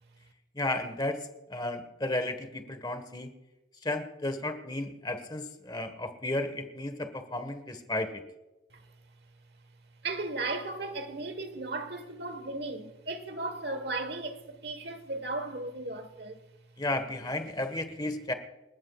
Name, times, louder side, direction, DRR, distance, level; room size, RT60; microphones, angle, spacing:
voice 1, 0.5-3.3 3.8-8.2 16.8-18.3, left 2 dB, 20° left, 1.5 m, -33 dB
voice 2, 10.0-16.4, right 2 dB, 55° right, 1.4 m, -36 dB
28.5 x 14.0 x 2.4 m
head